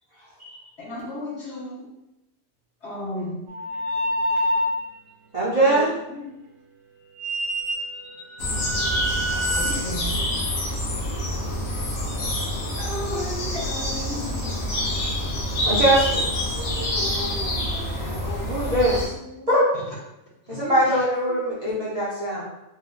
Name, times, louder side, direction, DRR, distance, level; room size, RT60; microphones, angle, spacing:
voice 1, 0.8-1.9 2.8-3.5 5.6-5.9 6.1-6.3 9.6-9.8 10.0-10.2 12.8-14.5 19.9-20.0 20.5-21.0, left 2 dB, 60° left, -6 dB, 1.1 m, -34 dB
sound 1, 3.5-4.8 7.2-9.7, equal, 75° right, 1.0 m, -27 dB
voice 2, 5.3-5.9 9.2-10.1 15.6-16.2 18.5-18.9 19.5-19.7 20.5-22.4, right 1 dB, 40° right, -9 dB, 0.6 m, -22 dB
sound 2, 8.4-19.1, left 1 dB, 80° left, 1.2 m, -26 dB
voice 3, 16.5-19.5 20.5-20.9 21.3-21.9, left 1 dB, 25° left, -5 dB, 0.7 m, -39 dB
4.1 x 2.1 x 2.4 m, 0.89 s
omnidirectional pair, 1.4 m